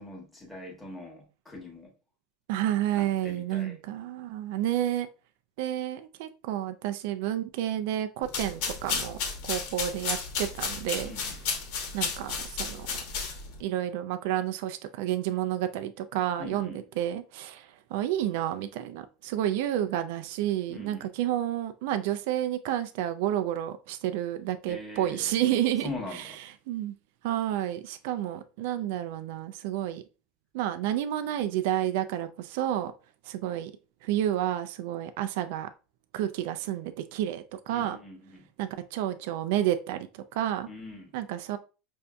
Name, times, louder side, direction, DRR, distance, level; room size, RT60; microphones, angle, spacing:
voice 1, 0.0-1.9 2.9-3.7 11.0-11.4 16.4-16.8 20.7-21.1 24.7-25.4 25.8-26.4 37.7-38.5 40.7-41.2, left 2 dB, 5° left, 1.2 m, -42 dB
voice 2, 2.5-5.1 5.6-9.2 9.4-11.1 11.9-12.9 13.6-26.3 26.7-26.9 27.2-30.0 30.5-32.9 33.2-33.7 34.0-35.7 36.1-38.0 38.6-40.7 41.1-41.6, right 12 dB, 70° right, 0.4 m, -30 dB
sound 1, 8.2-13.6, left 5 dB, 65° left, 1.1 m, -33 dB
5.5 x 2.6 x 2.2 m
supercardioid pair, 140°, 0 cm